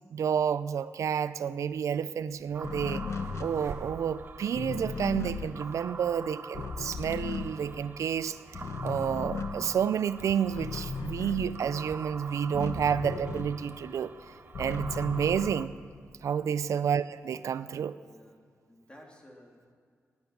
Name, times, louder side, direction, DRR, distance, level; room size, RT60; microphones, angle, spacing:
voice 1, 0.1-3.0 3.4-8.4 8.8-14.1 14.6-15.7 16.2-18.0, right 8 dB, 75° right, 15 dB, 0.5 m, -30 dB
sound 1, 2.3-15.7, right 4 dB, 60° right, 1.3 m, -52 dB
sound 2, 2.5-15.7, right 4 dB, 40° right, 0.7 m, -45 dB
sound 3, 2.6-8.2 8.5-13.9 14.3-16.1, left 5 dB, 65° left, 1.0 m, -37 dB
voice 2, 18.0-18.4 18.7-19.7, equal, 20° left, 0 dB, 3.0 m, -55 dB
19.0 x 9.5 x 6.5 m, 2.1 s
cardioid pair, 90°, 5 cm